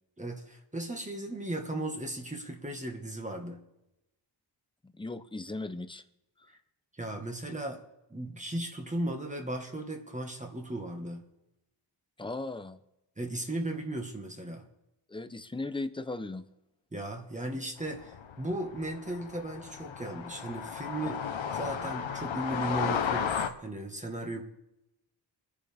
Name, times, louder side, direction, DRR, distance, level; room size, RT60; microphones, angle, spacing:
voice 1, 0.2-3.6 6.5-6.6 7.0-7.8 8.1-11.3 13.2-14.7 16.9-21.2 21.5-24.4, right 1 dB, 15° right, 3 dB, 1.6 m, -36 dB
voice 2, 4.8-6.0 12.2-12.8 15.1-16.5, left 2 dB, 10° left, 10 dB, 0.6 m, -37 dB
sound 1, 17.9-23.5, left 7 dB, 90° left, 1.1 m, -34 dB
24.5 x 10.0 x 3.5 m, 0.89 s
wide cardioid pair, 175°, 45 cm